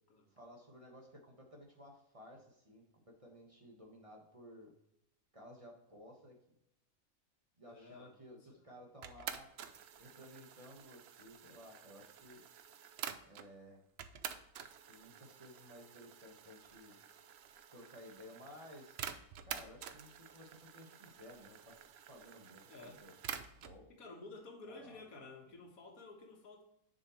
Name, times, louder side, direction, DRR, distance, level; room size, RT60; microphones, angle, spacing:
voice 1, 0.3-4.7 5.3-6.4 7.6-9.5 10.0-12.4 13.2-13.8 14.9-16.9 17.7-19.0 19.4-23.2 23.4-23.9 24.7-25.0, equal, 25° right, -1 dB, 1.3 m, -56 dB
voice 2, 7.6-8.1 8.5-8.6 22.7-23.0 23.9-26.6, left 3 dB, 80° left, 2 dB, 1.8 m, -52 dB
sound 1, 9.0-13.5 14.0-23.8, right 8 dB, 60° right, 0.7 m, -49 dB
6.9 x 5.3 x 3.0 m, 0.79 s
omnidirectional pair, 1.5 m